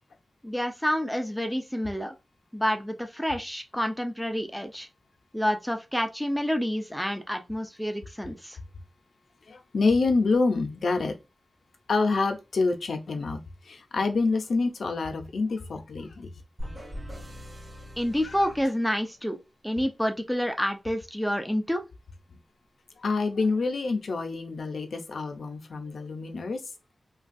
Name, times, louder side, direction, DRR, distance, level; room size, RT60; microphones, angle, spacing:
voice 1, 0.4-2.1 2.5-4.9 5.3-8.6 18.0-19.4 19.6-21.8, equal, ahead, 0.4 m, -28 dB
voice 2, 9.5-11.2 11.9-13.4 13.6-16.3 18.2-18.4 23.0-26.6, left 3 dB, 75° left, 0.5 m, -27 dB
sound 1, 16.6-19.4, equal, 30° right, 1.3 m, -41 dB
3.2 x 2.2 x 2.5 m
wide cardioid pair, 120°, 0 cm